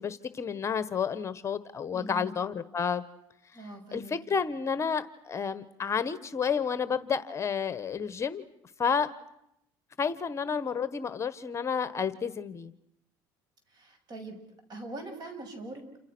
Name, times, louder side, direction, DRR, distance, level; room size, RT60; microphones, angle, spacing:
voice 1, 0.0-3.0 3.9-8.4 8.8-9.1 10.0-12.7, left 6 dB, 30° left, 13 dB, 1.3 m, -30 dB
voice 2, 1.9-2.4 3.5-4.1 13.7-14.4 14.7-15.9, right 2 dB, 45° right, 6 dB, 7.3 m, -42 dB
29.0 x 27.0 x 6.3 m, 0.79 s
cardioid pair, 105°, 10 cm